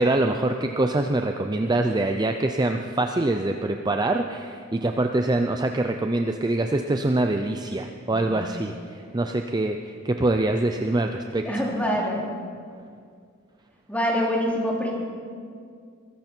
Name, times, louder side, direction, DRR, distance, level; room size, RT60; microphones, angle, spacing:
voice 1, 0.0-11.5, right 2 dB, 20° right, 5 dB, 0.5 m, -24 dB
voice 2, 8.1-8.4 11.4-12.2 13.9-14.9, equal, 10° left, -3 dB, 2.9 m, -25 dB
22.5 x 14.0 x 4.5 m, 2.2 s
head